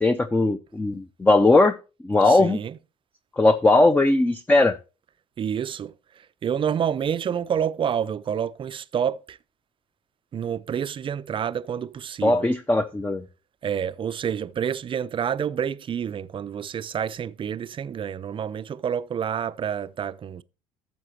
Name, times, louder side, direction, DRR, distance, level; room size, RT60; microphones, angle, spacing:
voice 1, 0.0-1.8 2.0-2.6 3.4-4.8 12.2-13.2, left 2 dB, 10° left, 0.6 m, -19 dB
voice 2, 2.2-2.8 5.4-9.4 10.3-12.5 13.6-20.4, right 8 dB, 35° right, 0.5 m, -28 dB
12.0 x 7.6 x 2.9 m
hypercardioid pair, 70°, 16 cm